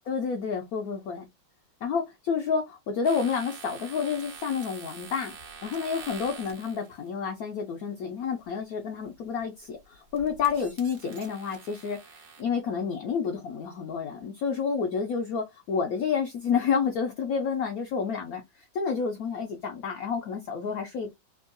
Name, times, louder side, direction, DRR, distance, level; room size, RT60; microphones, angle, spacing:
voice 1, 0.1-1.3 1.8-5.4 5.6-21.1, left 6 dB, 70° left, 0.8 m, -29 dB
sound 1, 3.0-7.1 9.0-9.4 9.8-12.4, right 6 dB, 65° right, 1.3 m, -45 dB
3.5 x 2.3 x 2.4 m
omnidirectional pair, 2.0 m